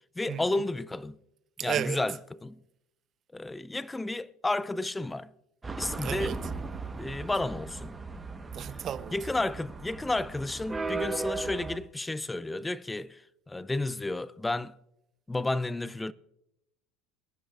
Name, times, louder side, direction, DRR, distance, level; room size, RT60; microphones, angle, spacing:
voice 1, 0.2-1.2 1.6-2.6 3.3-5.3 5.8-6.4 7.0-7.9 8.7-8.8 9.1-14.8 15.3-16.1, left 2 dB, 10° left, 0.4 m, -32 dB
voice 2, 1.6-2.0 6.0-6.4 8.5-9.1, right 10 dB, 40° right, 0.5 m, -33 dB
sound 1, 5.6-11.8, right 3 dB, 15° right, 1.1 m, -37 dB
22.5 x 10.0 x 2.4 m
supercardioid pair, 95°, 0 cm